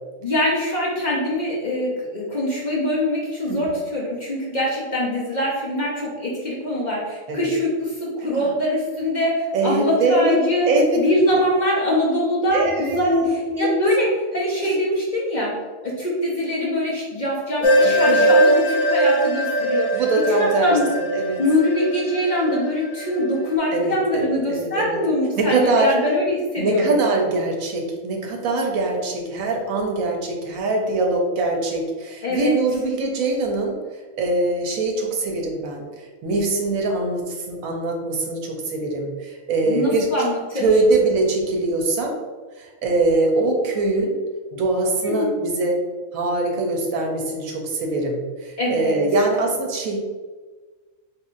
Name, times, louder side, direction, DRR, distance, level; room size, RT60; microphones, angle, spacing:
voice 1, 0.2-10.7 11.0-13.1 13.6-15.6 15.8-20.0 20.3-20.8 21.4-26.9 32.2-32.6 39.7-40.7 45.0-45.3 48.6-49.0, left 1 dB, 45° left, -4 dB, 0.7 m, -23 dB
voice 2, 9.5-10.4 10.7-11.4 12.5-13.7 14.6-14.7 17.8-18.4 19.9-21.4 23.7-25.0 25.4-25.9 26.6-33.8 34.2-40.1 40.6-42.1 42.6-44.1 44.5-45.8 46.1-50.0, right 2 dB, 80° right, 1 dB, 1.1 m, -23 dB
sound 1, 17.6-23.3, right 1 dB, 75° left, 0.9 m, -20 dB
4.4 x 3.1 x 2.5 m, 1.3 s
omnidirectional pair, 1.4 m